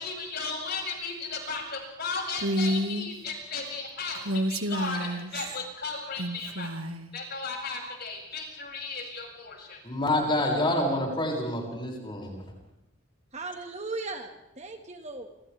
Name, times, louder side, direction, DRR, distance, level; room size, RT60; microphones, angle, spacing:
voice 1, 0.0-6.7 7.1-9.8, left 4 dB, 50° left, 0 dB, 7.4 m, -35 dB
Female speech woman speaking, 2.4-3.1 4.2-5.6 6.2-7.1, equal, 90° right, 2.0 m, -29 dB
voice 2, 9.8-12.5, left 1 dB, 25° left, -1 dB, 6.7 m, -27 dB
voice 3, 13.3-15.3, right 3 dB, 30° right, 5 dB, 1.9 m, -37 dB
28.0 x 28.0 x 3.6 m, 0.90 s
head